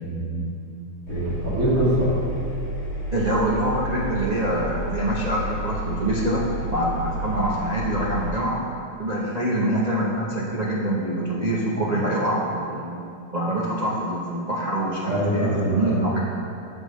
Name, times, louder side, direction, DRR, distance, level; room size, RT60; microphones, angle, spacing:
voice 1, 0.0-0.5 1.1-2.1 15.1-16.1, right 1 dB, 40° right, -9 dB, 2.5 m, -24 dB
Engine, 1.1-8.3, equal, 75° left, 2.8 m, -31 dB
voice 2, 3.1-6.4 6.7-8.6 9.0-13.0 13.3-16.2, right 1 dB, 85° right, -6 dB, 0.3 m, -25 dB
13.5 x 5.5 x 3.2 m, 2.6 s
omnidirectional pair, 2.3 m